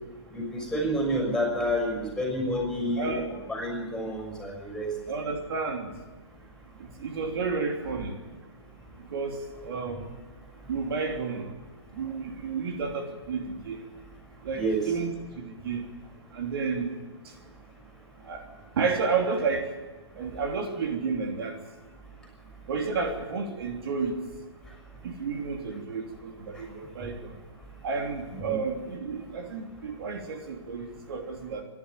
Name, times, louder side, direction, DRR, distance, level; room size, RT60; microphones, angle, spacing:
voice 1, 0.3-4.9 14.6-14.8 28.3-28.5, equal, 5° left, 1 dB, 6.4 m, -29 dB
voice 2, 3.0-3.3 5.1-5.9 7.0-8.2 9.1-10.1 10.7-11.5 11.9-13.8 14.4-15.8 16.3-17.0 18.3-18.4 18.8-19.7 20.2-21.6 22.7-24.2 25.0-27.3 27.8-31.6, right 4 dB, 60° right, 3 dB, 3.2 m, -31 dB
26.5 x 11.5 x 9.0 m, 1.3 s
hypercardioid pair, 150°, 14 cm